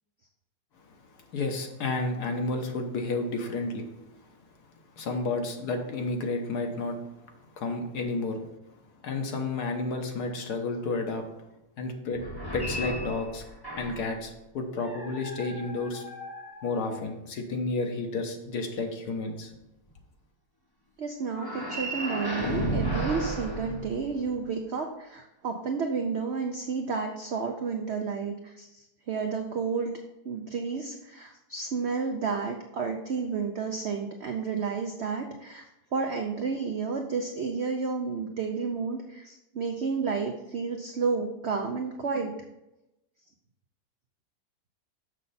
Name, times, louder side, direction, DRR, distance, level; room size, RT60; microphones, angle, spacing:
voice 1, 1.3-3.9 5.0-7.0 7.6-8.5 9.0-11.3 11.8-12.2 12.5-13.4 13.8-16.0 16.6-19.5, left 3 dB, 65° left, 4 dB, 1.5 m, -31 dB
sound 1, 12.1-14.2 14.8-17.2 21.3-24.5, right 1 dB, 15° left, 0.8 m, -34 dB
voice 2, 21.0-29.9 30.2-35.6 35.9-42.3, right 5 dB, 70° right, 4 dB, 0.6 m, -31 dB
6.5 x 6.5 x 4.1 m, 0.93 s
omnidirectional pair, 1.9 m